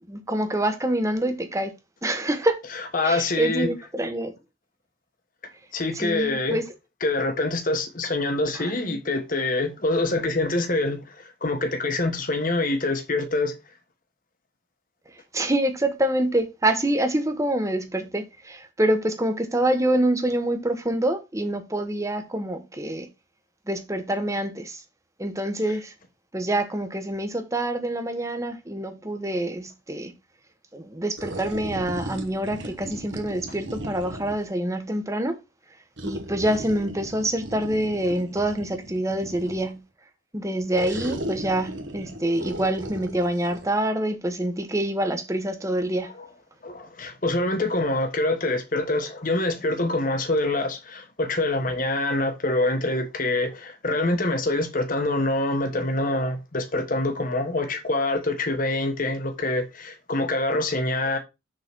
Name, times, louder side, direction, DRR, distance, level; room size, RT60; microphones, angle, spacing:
voice 1, 0.1-1.7 2.0-2.6 3.0-4.3 5.9-6.7 8.5-9.0 15.3-23.1 23.7-24.8 25.2-25.9 26.3-30.1 30.7-35.4 36.0-39.8 40.3-46.1, right 1 dB, 15° right, 1.0 m, -26 dB
voice 2, 2.6-3.7 5.7-6.6 7.0-13.5 25.7-25.8 46.1-46.3 46.6-61.2, left 2 dB, 45° left, 1.4 m, -25 dB
sound 1, 31.2-34.5 36.0-39.8 40.7-43.7, right 1 dB, 65° right, 1.3 m, -36 dB
6.5 x 4.0 x 6.0 m
head